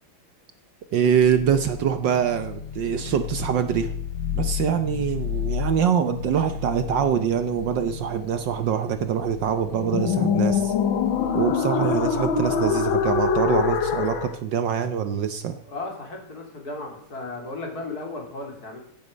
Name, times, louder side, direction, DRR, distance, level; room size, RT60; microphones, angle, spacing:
voice 1, 0.9-3.9 4.3-10.7 11.3-15.6, right 8 dB, 65° right, 9 dB, 1.3 m, -24 dB
sound 1, 1.2-14.4, left 6 dB, 70° left, 1.7 m, -27 dB
voice 2, 15.7-18.8, left 2 dB, 45° left, 1 dB, 3.4 m, -35 dB
16.0 x 8.8 x 5.1 m, 0.65 s
omnidirectional pair, 2.3 m